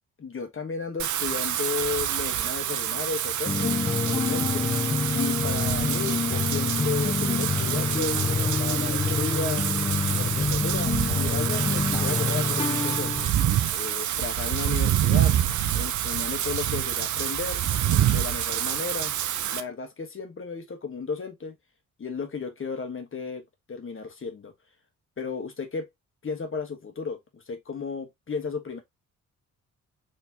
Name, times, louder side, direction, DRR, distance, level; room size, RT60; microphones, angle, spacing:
voice 1, 0.2-4.7 5.1-9.6 10.1-13.3 13.7-15.3 15.7-17.6 18.1-19.1 19.5-21.6 22.0-23.4 23.7-24.5 25.2-25.9 26.2-28.8, left 5 dB, 40° left, 1.2 m, -34 dB
Wind / Rain, 1.0-19.6, right 11 dB, 65° right, 0.6 m, -27 dB
sound 1, 3.5-13.2, left 5 dB, 20° left, 0.4 m, -27 dB
4.2 x 3.1 x 2.8 m
supercardioid pair, 60°, 32 cm